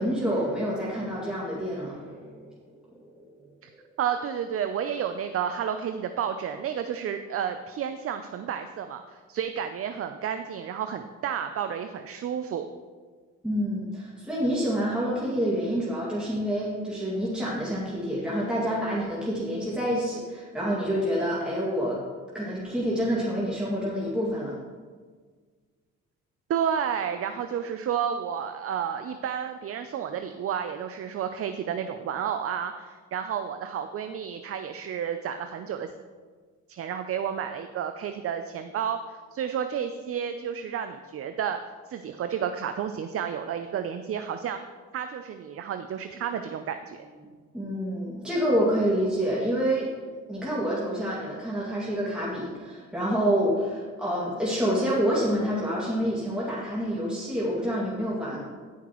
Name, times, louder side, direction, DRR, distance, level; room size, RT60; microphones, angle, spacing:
voice 1, 0.0-2.5 2.9-3.8 13.4-22.0 22.3-24.5 47.5-49.9 50.3-58.4, equal, 5° right, -7 dB, 2.1 m, -28 dB
voice 2, 4.0-12.7 26.5-35.9 36.7-41.6 41.9-44.6 44.9-47.1, right 8 dB, 50° right, 8 dB, 0.5 m, -31 dB
16.5 x 5.8 x 3.0 m, 1.5 s
cardioid pair, 90°, 30 cm